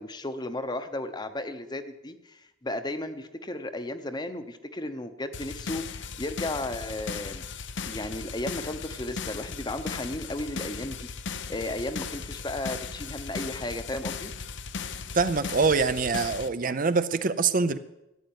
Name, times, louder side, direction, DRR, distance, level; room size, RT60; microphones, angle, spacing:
voice 1, 0.0-11.1 11.5-14.3, left 1 dB, 20° left, 0.9 m, -34 dB
sound 1, 5.3-16.5, left 5 dB, 60° left, 0.7 m, -37 dB
voice 2, 15.1-17.8, right 4 dB, 40° right, 0.6 m, -24 dB
13.0 x 9.3 x 9.4 m
head